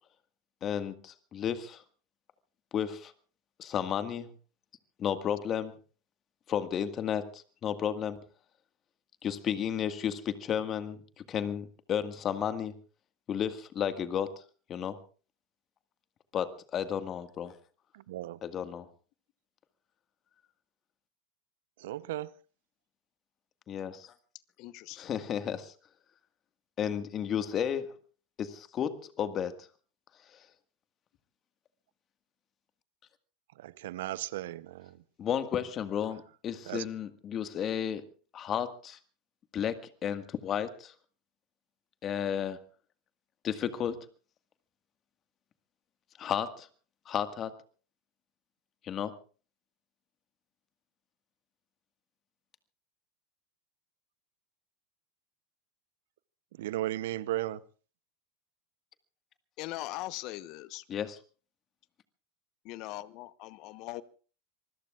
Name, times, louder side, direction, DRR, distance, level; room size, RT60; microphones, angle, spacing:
voice 1, 0.6-1.8 2.7-3.1 3.6-4.3 5.0-5.8 6.5-8.2 9.2-12.7 13.3-14.4 14.7-15.0 16.3-17.5 18.4-18.8 23.7-24.1 24.9-25.7 26.8-28.0 28.4-29.7 35.2-38.0 38.3-39.0 39.5-40.9 42.0-42.6 43.4-44.0 46.2-46.7 47.0-47.5 48.8-49.1 60.9-61.2, left 9 dB, 35° left, 10 dB, 1.7 m, -33 dB
voice 2, 17.9-18.4 21.8-22.3 33.6-35.0 36.7-36.8 56.6-57.6, right 15 dB, 70° right, 18 dB, 0.8 m, -35 dB
voice 3, 24.6-25.1 59.6-60.8 62.6-64.0, left 17 dB, 55° left, 16 dB, 1.0 m, -40 dB
26.5 x 20.5 x 2.5 m, 0.37 s
hypercardioid pair, 95°, 0 cm